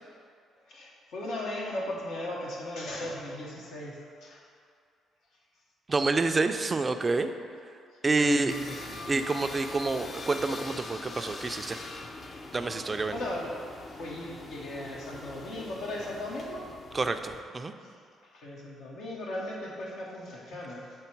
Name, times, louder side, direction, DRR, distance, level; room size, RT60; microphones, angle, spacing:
voice 1, 0.6-4.4 8.2-9.2 12.8-13.6 13.9-16.7 17.8-17.9 18.3-20.9, left 1 dB, 75° left, -3 dB, 0.9 m, -37 dB
voice 2, 5.9-7.3 8.0-8.5 9.1-11.8 12.5-13.2 16.9-17.7, right 3 dB, 30° right, 8 dB, 0.3 m, -28 dB
sound 1, 8.5-17.4, left 2 dB, 40° left, 0.5 m, -43 dB
7.0 x 3.3 x 4.5 m, 2.2 s
cardioid pair, 75°, 0 cm